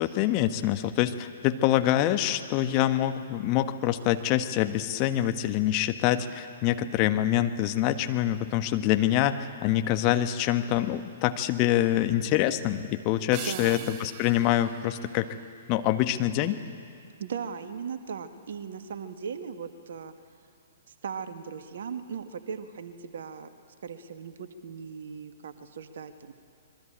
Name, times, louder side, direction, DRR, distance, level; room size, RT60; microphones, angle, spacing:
voice 1, 0.0-15.3 15.7-16.6, left 13 dB, 35° left, 8 dB, 1.4 m, -25 dB
sound 1, 13.3-15.9, right 11 dB, 35° right, 1.1 m, -43 dB
voice 2, 13.4-13.9 17.2-20.1 21.0-23.5 23.8-26.3, right 6 dB, 60° right, 9 dB, 1.6 m, -38 dB
25.5 x 22.0 x 8.9 m, 2.3 s
figure-of-eight pair, 115°, 0 cm